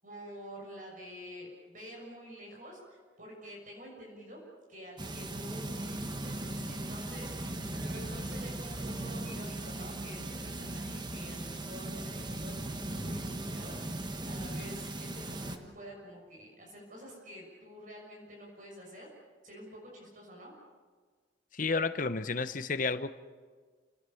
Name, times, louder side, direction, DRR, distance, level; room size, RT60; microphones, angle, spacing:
voice 1, 0.0-4.4 4.7-19.1 19.4-20.5, equal, 45° right, -1 dB, 6.5 m, -48 dB
sound 1, 5.0-15.6, right 1 dB, 25° right, 1.4 m, -38 dB
voice 2, 21.5-23.1, left 4 dB, 45° left, 11 dB, 0.9 m, -31 dB
29.5 x 19.0 x 7.1 m, 1.5 s
head